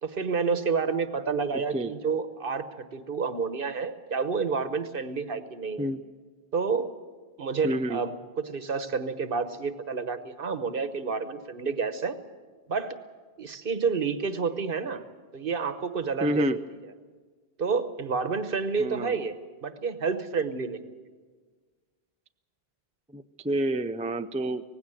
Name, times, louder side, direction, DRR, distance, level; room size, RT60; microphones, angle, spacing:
voice 1, 0.0-5.9 6.5-6.9 7.4-12.2 12.7-13.0 13.4-15.0 15.3-16.6 17.6-20.8, right 5 dB, 60° right, 11 dB, 1.2 m, -29 dB
voice 2, 7.6-8.0 16.2-16.6 18.8-19.2 23.1-24.6, right 1 dB, 10° right, 9 dB, 0.4 m, -28 dB
18.5 x 16.5 x 8.9 m, 1.5 s
omnidirectional pair, 1.0 m